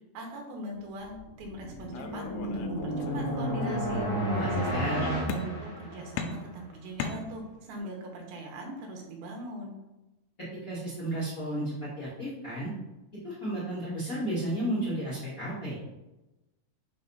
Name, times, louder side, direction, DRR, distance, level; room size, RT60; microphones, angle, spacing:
voice 1, 0.1-4.1 4.6-9.8, right 1 dB, 70° right, 1 dB, 2.8 m, -41 dB
sound 1, 1.2-6.4, equal, 45° left, 1.3 m, -32 dB
sound 2, 1.9-3.3 3.6-4.4 5.3-5.8 6.2-7.8, left 6 dB, 85° left, 2.6 m, -39 dB
voice 2, 4.3-5.0 10.6-12.7 13.2-15.7, right 1 dB, 65° left, -9 dB, 0.8 m, -33 dB
6.3 x 2.8 x 5.3 m, 1.0 s
omnidirectional pair, 4.7 m